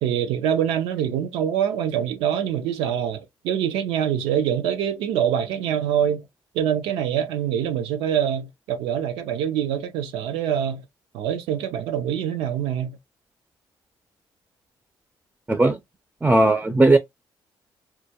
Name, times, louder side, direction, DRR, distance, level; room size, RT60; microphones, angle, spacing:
voice 1, 0.0-6.2 6.5-10.8 11.1-13.0, right 9 dB, 90° right, 0.4 m, -25 dB
voice 2, 15.5-15.8 16.2-17.0, right 2 dB, 15° right, 0.4 m, -17 dB
2.2 x 2.1 x 2.7 m
supercardioid pair, 70°, 9 cm